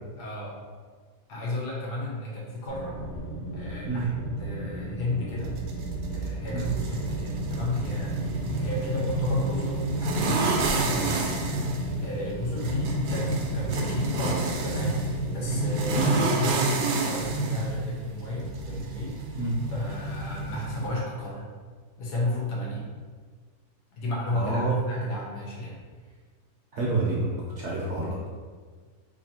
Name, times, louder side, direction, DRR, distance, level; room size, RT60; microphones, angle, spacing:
voice 1, 0.2-0.6 1.3-3.0 3.5-4.1 4.4-5.5 6.1-8.2 8.5-11.4 12.0-15.0 15.3-16.7 17.1-19.4 19.7-21.5 22.0-22.8 24.0-25.8, left 1 dB, 85° left, -4 dB, 1.5 m, -33 dB
sound 1, 2.7-16.1, equal, 45° left, 1.1 m, -36 dB
sound 2, 5.4-20.9, right 2 dB, 75° right, 1.1 m, -29 dB
voice 2, 16.0-16.4 19.4-19.5 24.3-24.7 26.7-28.2, right 2 dB, 55° right, -5 dB, 0.9 m, -28 dB
3.3 x 2.7 x 4.1 m, 1.5 s
omnidirectional pair, 1.7 m